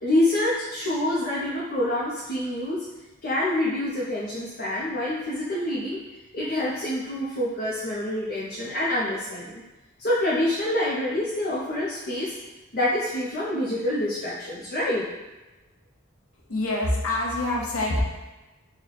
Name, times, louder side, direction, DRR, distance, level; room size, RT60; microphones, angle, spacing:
voice 1, 0.0-2.8 3.2-6.0 6.3-9.6 10.0-12.3 12.7-15.1, left 1 dB, 45° left, -7 dB, 0.6 m, -26 dB
voice 2, 16.5-18.0, left 1 dB, 90° left, -2 dB, 0.8 m, -25 dB
3.1 x 2.2 x 3.9 m, 1.1 s
head